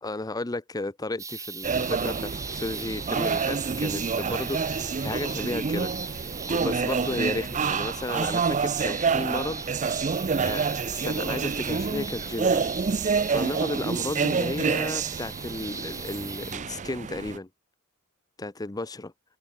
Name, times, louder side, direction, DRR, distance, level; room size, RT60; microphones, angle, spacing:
voice 1, 0.0-9.6 10.0-12.6 13.3-17.5 18.4-19.1, left 2 dB, 15° left, 0.6 m, -33 dB
sound 1, 1.2-16.6, right 4 dB, 15° right, 1.6 m, -39 dB
sound 2, 1.6-17.4, right 5 dB, 35° right, 0.5 m, -28 dB
head